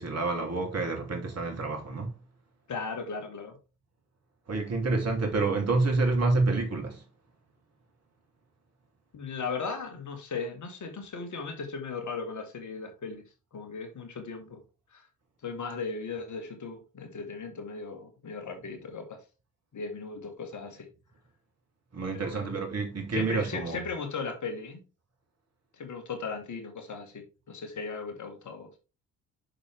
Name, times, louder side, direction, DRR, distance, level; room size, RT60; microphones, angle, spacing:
voice 1, 0.0-2.2 4.5-7.0 21.9-23.8, right 3 dB, 35° right, 2.9 m, -28 dB
voice 2, 2.7-3.6 9.1-13.2 13.5-14.6 14.9-15.1 15.4-19.2 19.7-20.9 22.1-22.5 23.1-24.8 25.7-28.7, left 4 dB, 45° left, 2.3 m, -37 dB
7.5 x 6.5 x 3.4 m
figure-of-eight pair, 45°, 41 cm